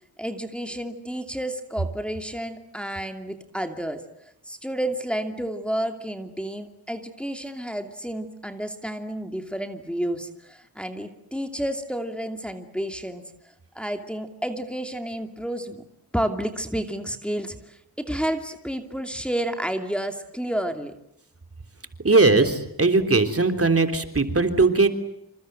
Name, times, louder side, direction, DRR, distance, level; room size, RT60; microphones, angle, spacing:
voice 1, 0.2-13.2 13.7-15.8 16.1-20.9, right 1 dB, 5° left, 5 dB, 2.7 m, -30 dB
voice 2, 22.0-24.9, right 3 dB, 35° right, 7 dB, 3.4 m, -19 dB
28.0 x 27.0 x 7.8 m, 0.76 s
wide cardioid pair, 75°, 38 cm